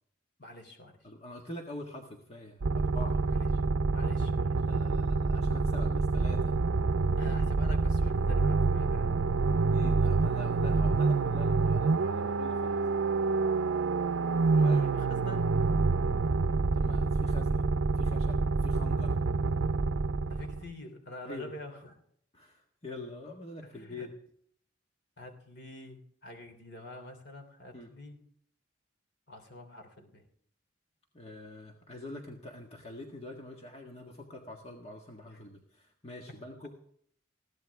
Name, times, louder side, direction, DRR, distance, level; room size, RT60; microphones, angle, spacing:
voice 1, 0.4-1.1 3.2-3.5 3.9-4.6 7.2-9.2 14.5-15.6 20.3-22.0 23.6-24.1 25.2-28.2 29.3-30.2 35.3-35.4, left 1 dB, 55° left, 5 dB, 3.1 m, -46 dB
voice 2, 1.0-3.2 4.6-6.6 9.7-12.8 14.6-14.9 16.7-17.7 17.9-19.2 21.2-21.5 22.3-24.1 27.7-27.9 31.1-36.7, left 1 dB, 30° left, 1 dB, 1.7 m, -45 dB
sound 1, 2.6-20.7, right 4 dB, 80° right, 0.6 m, -27 dB
21.0 x 16.0 x 3.6 m, 0.66 s
head